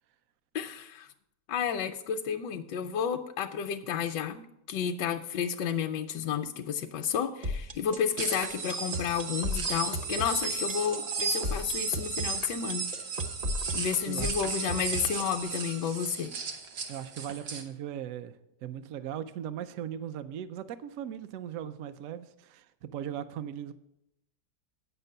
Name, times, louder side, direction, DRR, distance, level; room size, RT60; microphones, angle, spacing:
voice 1, 0.5-1.1 1.5-12.8 13.7-16.3, left 8 dB, 85° left, 5 dB, 1.2 m, -31 dB
sound 1, 7.4-15.4, equal, 40° right, 0.6 m, -35 dB
sound 2, 8.2-17.6, right 5 dB, 90° right, 1.8 m, -35 dB
voice 2, 16.9-23.7, right 10 dB, 70° right, 10 dB, 0.8 m, -38 dB
8.9 x 6.7 x 6.6 m, 0.83 s
omnidirectional pair, 1.8 m